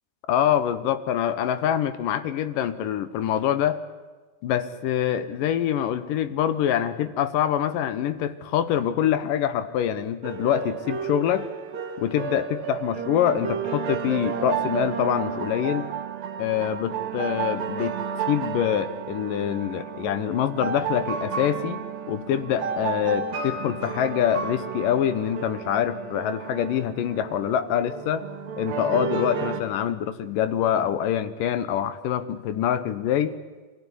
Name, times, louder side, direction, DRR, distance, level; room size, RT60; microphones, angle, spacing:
voice 1, 0.3-3.8 4.4-11.5 12.0-15.9 16.4-18.0 18.3-28.3 28.6-33.4, left 10 dB, 70° left, 13 dB, 2.5 m, -25 dB
sound 1, 10.2-29.6, right 7 dB, 70° right, 4.0 m, -32 dB
24.0 x 16.5 x 10.0 m, 1.3 s
omnidirectional pair, 4.3 m